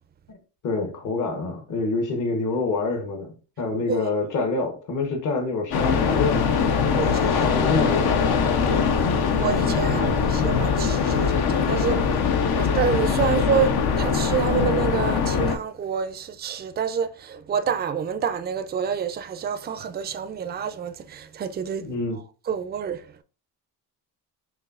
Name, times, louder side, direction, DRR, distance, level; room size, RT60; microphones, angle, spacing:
voice 1, 0.6-6.6 7.4-8.2 9.8-10.2 21.8-22.2, left 3 dB, 50° left, 1.1 m, -27 dB
sound 1, 5.7-15.6, left 6 dB, 65° left, 0.8 m, -22 dB
voice 2, 7.0-7.5 8.7-21.9 22.5-23.1, right 7 dB, 25° right, 0.4 m, -28 dB
5.3 x 3.1 x 2.4 m
cardioid pair, 105°, 40 cm